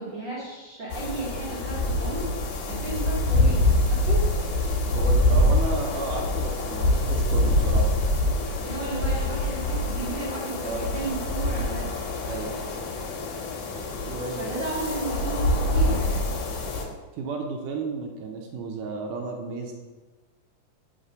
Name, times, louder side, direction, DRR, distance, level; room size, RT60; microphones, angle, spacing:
voice 1, 0.0-2.3 2.7-4.3 8.6-11.9 14.4-16.4, right 3 dB, 60° right, -7 dB, 1.3 m, -33 dB
sound 1, 0.9-16.9, left 1 dB, 80° left, 2.4 m, -25 dB
voice 2, 4.9-7.9 10.6-10.9 12.3-12.8 14.1-14.5 17.1-19.7, right 3 dB, 80° right, 1 dB, 2.1 m, -33 dB
5.4 x 3.6 x 4.9 m, 1.3 s
omnidirectional pair, 3.7 m